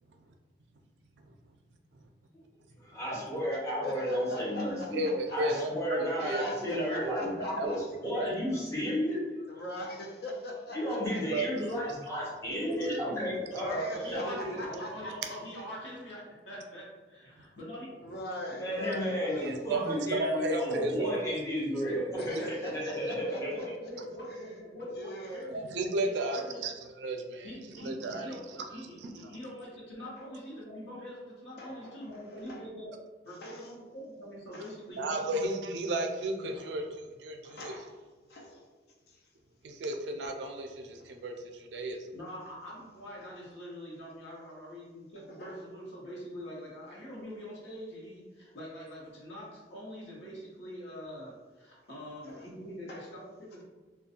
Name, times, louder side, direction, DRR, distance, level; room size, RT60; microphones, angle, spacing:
voice 1, 2.8-5.1 5.3-9.2 10.7-13.9 14.2-14.5 18.6-23.5, equal, 15° left, -6 dB, 0.7 m, -32 dB
voice 2, 3.8-5.4 6.1-7.8 9.5-11.2 13.5-15.6 18.0-20.0 22.2-23.7 24.3-24.5 25.0-25.5 30.2-30.3 31.6-32.6 33.3-33.7 34.5-34.7 36.5-36.8 37.4-37.9 38.3-38.7 39.1-39.3 45.2-45.6 52.2-52.5 52.9-53.1, left 1 dB, 60° left, 0 dB, 0.4 m, -42 dB
voice 3, 4.9-6.4 7.6-7.7 8.1-8.3 11.3-11.5 19.4-21.2 22.2-22.4 25.5-26.7 27.0-27.5 27.8-28.3 29.0-29.3 35.0-37.7 39.6-42.1, right 2 dB, 70° right, 4 dB, 0.3 m, -33 dB
voice 4, 13.2-13.6 13.9-14.4 14.7-18.0 23.1-25.6 26.0-26.8 27.4-32.9 33.2-35.6 42.1-53.6, equal, 80° left, -4 dB, 0.9 m, -44 dB
2.5 x 2.2 x 2.7 m, 1.3 s
head